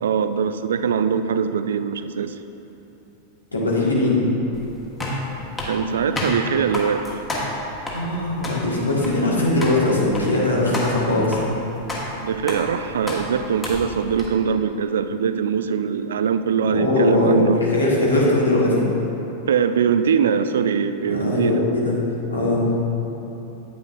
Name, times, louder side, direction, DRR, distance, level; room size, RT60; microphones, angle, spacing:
voice 1, 0.0-2.4 5.6-7.1 12.2-17.6 19.5-21.6, right 7 dB, 65° right, 11 dB, 0.3 m, -22 dB
voice 2, 3.5-4.2 7.9-11.4 16.6-17.3 17.7-18.8 21.0-22.0 22.3-22.6, left 2 dB, 80° left, -5 dB, 1.7 m, -20 dB
sound 1, 4.5-14.3, left 1 dB, 15° left, 1.4 m, -31 dB
9.2 x 8.8 x 2.6 m, 3.0 s
figure-of-eight pair, 90°, 0 cm